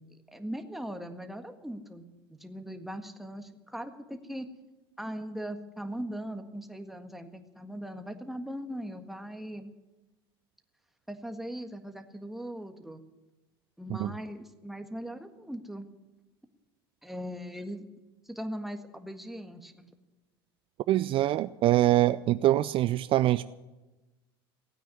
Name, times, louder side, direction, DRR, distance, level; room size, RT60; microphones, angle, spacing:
voice 1, 0.3-2.1 2.4-4.5 5.0-9.8 11.1-13.0 13.8-15.9 17.0-17.9 18.3-19.8, equal, ahead, 6 dB, 1.7 m, -39 dB
voice 2, 20.9-23.4, right 14 dB, 45° right, 14 dB, 0.5 m, -24 dB
16.0 x 9.1 x 9.7 m, 1.1 s
hypercardioid pair, 80°, 13 cm